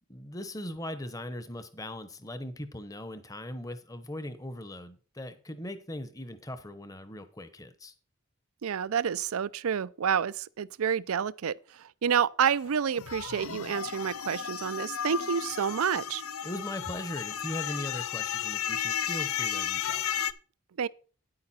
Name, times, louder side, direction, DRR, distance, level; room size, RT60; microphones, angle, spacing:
voice 1, 0.1-7.9 16.4-20.0, left 1 dB, 15° left, 0.8 m, -39 dB
voice 2, 8.6-16.2 20.8-20.9, right 7 dB, 85° right, 0.4 m, -29 dB
sound 1, 12.9-20.3, left 9 dB, 80° left, 0.6 m, -33 dB
9.7 x 8.9 x 4.2 m
head